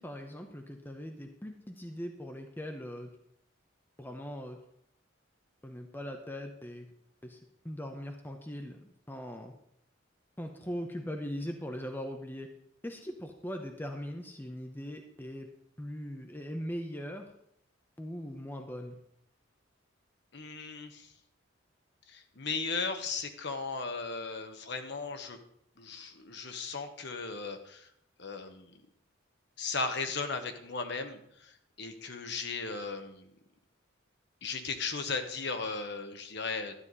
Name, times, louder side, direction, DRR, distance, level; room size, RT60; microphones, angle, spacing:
voice 1, 0.0-3.1 4.0-4.6 5.6-6.9 7.2-7.4 7.6-9.5 10.4-12.5 12.8-15.5 15.8-17.3 18.0-19.0, equal, 10° left, 4 dB, 0.8 m, -40 dB
voice 2, 20.3-21.1 22.1-25.4 25.8-27.9 28.2-28.8 29.6-33.3 34.4-36.7, left 4 dB, 60° left, 6 dB, 1.2 m, -36 dB
12.5 x 9.3 x 4.1 m, 0.72 s
head